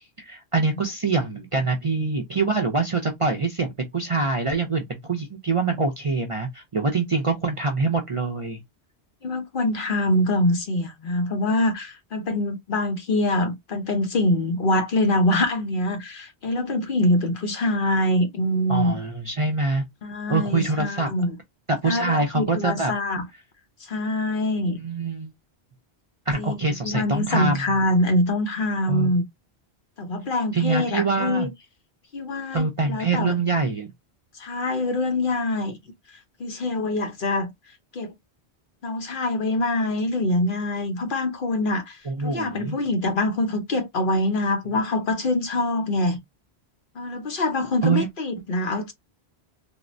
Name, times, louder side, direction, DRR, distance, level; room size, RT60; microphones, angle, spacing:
voice 1, 0.3-8.6 18.7-19.8 20.3-21.1 21.7-22.9 24.7-25.3 26.3-27.6 28.9-29.1 30.5-31.5 32.5-33.9 42.1-42.8 47.8-48.1, right 3 dB, 40° right, 0.5 m, -24 dB
voice 2, 9.2-19.0 20.0-21.4 21.9-23.3 23.9-24.8 26.4-26.5 26.8-29.2 30.0-31.5 32.1-33.4 34.4-35.8 36.4-37.5 37.9-38.1 38.8-46.2 47.0-48.9, left 1 dB, 55° left, 0.8 m, -24 dB
3.5 x 2.1 x 2.5 m
omnidirectional pair, 1.1 m